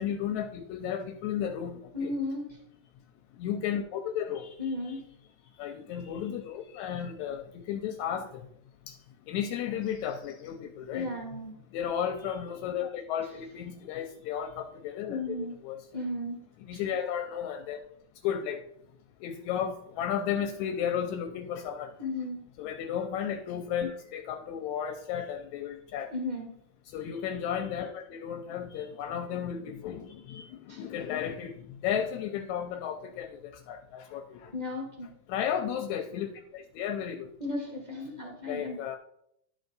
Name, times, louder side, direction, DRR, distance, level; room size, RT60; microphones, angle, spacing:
voice 1, 0.0-2.1 3.4-5.0 5.6-8.5 8.9-9.0 9.3-11.1 11.7-15.8 16.6-17.8 18.2-18.6 19.2-21.9 22.6-26.1 26.9-31.5 31.8-34.5 35.3-37.3 38.4-39.0, left 9 dB, 80° left, 7 dB, 1.8 m, -34 dB
voice 2, 1.9-2.5 4.6-5.0 10.9-11.5 15.1-15.5 15.9-16.4 16.7-16.8 22.0-22.4 26.1-26.5 30.7-30.8 34.5-35.1 37.4-38.8, left 2 dB, 35° left, -2 dB, 0.6 m, -34 dB
11.5 x 4.5 x 4.0 m, 0.73 s
omnidirectional pair, 3.6 m